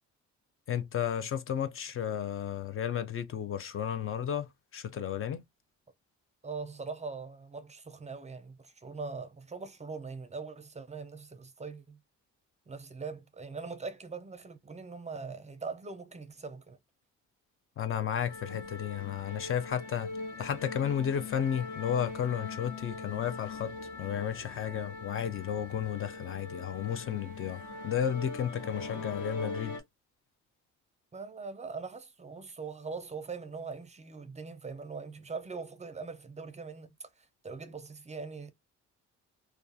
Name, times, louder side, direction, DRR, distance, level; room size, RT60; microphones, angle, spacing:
voice 1, 0.7-5.4 17.8-20.1 20.4-29.8, left 9 dB, 45° left, 0.4 m, -33 dB
voice 2, 6.4-12.0 12.7-16.8 31.1-38.5, right 4 dB, 25° right, 0.5 m, -42 dB
sound 1, 18.3-29.8, left 3 dB, 70° left, 0.9 m, -42 dB
2.3 x 2.3 x 2.6 m
cardioid pair, 90°, 30 cm